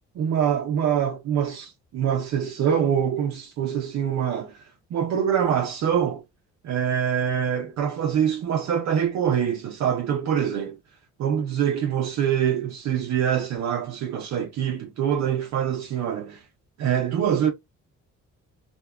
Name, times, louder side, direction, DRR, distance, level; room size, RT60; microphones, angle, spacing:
voice 1, 0.2-6.2 6.6-10.8 11.2-16.4 16.8-17.5, right 8 dB, 60° right, 0.6 m, -24 dB
2.8 x 2.1 x 2.2 m
cardioid pair, 90°, 30 cm